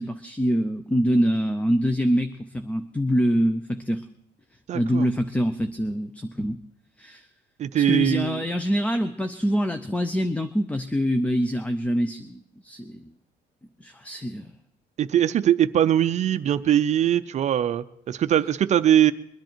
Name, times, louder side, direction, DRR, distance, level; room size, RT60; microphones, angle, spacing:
voice 1, 0.0-4.1 4.7-6.6 7.0-7.3 7.7-13.0 13.8-14.5, equal, 10° left, 9 dB, 0.5 m, -25 dB
voice 2, 4.7-5.1 7.6-8.4 15.0-19.1, right 11 dB, 40° right, 12 dB, 0.5 m, -21 dB
22.0 x 10.5 x 4.5 m, 0.78 s
cardioid pair, 140°, 17 cm